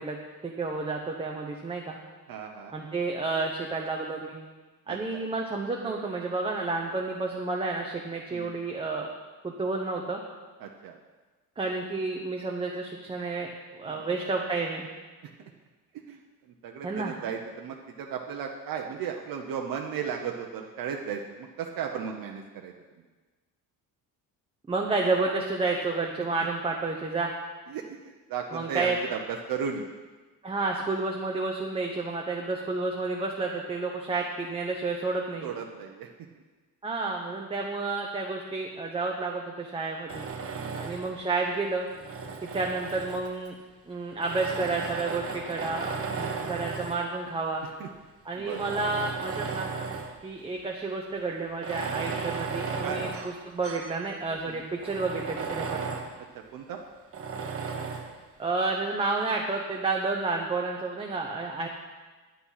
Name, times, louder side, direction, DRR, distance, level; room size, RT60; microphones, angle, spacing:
voice 1, 0.0-2.0 2.7-4.4 4.9-9.1 9.4-10.2 11.6-14.9 16.8-17.1 24.7-27.3 28.5-29.0 30.4-35.5 36.8-40.3 40.8-41.9 42.4-43.5 43.9-47.6 48.2-49.7 50.2-55.8 58.4-61.7, right 3 dB, 15° right, 0 dB, 0.8 m, -30 dB
voice 2, 2.3-2.9 4.9-5.2 8.3-8.5 10.6-11.0 13.8-14.1 15.4-15.5 16.1-22.7 27.7-29.9 35.4-36.1 40.5-40.8 42.2-42.4 47.8-47.9 48.4-48.8 52.8-53.1 54.5-54.6 56.5-56.8, right 7 dB, 65° right, 2 dB, 0.9 m, -35 dB
Tools, 40.1-41.2 41.9-43.5 44.2-47.1 47.8-47.9 48.4-50.2 50.5-50.6 51.5-54.0 54.4-54.5 54.8-56.2 57.1-58.1, right 5 dB, 40° right, 1.1 m, -35 dB
9.9 x 8.6 x 5.7 m, 1.3 s
cardioid pair, 165°, 37 cm